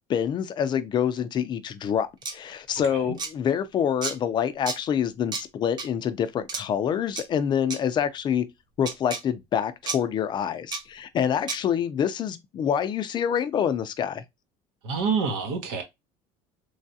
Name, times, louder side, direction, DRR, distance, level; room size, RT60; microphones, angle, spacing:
voice 1, 0.1-8.5 8.8-14.2, left 8 dB, 35° left, 0.4 m, -26 dB
sound 1, 2.2-2.3 3.2-3.3 4.0-4.1 4.7-4.8 5.3-5.4 5.8-5.9 6.5-6.6 7.2-7.3 7.7-7.8 8.8-9.2 9.9-10.0 10.7-10.8 11.5-11.6, right 4 dB, 30° right, 0.7 m, -31 dB
voice 2, 2.8-3.2 14.8-15.8, right 5 dB, 80° right, 0.9 m, -27 dB
3.2 x 2.3 x 2.6 m
cardioid pair, 135°, 14 cm